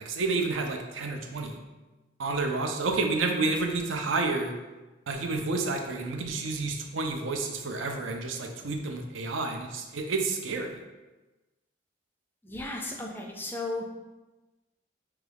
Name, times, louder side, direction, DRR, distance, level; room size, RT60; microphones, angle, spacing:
voice 1, 0.0-1.6 2.2-4.5 5.1-10.8, right 3 dB, 85° right, 4 dB, 0.5 m, -30 dB
voice 2, 12.4-13.8, left 2 dB, 10° left, 1 dB, 0.3 m, -35 dB
4.9 x 2.3 x 3.3 m, 1.1 s
head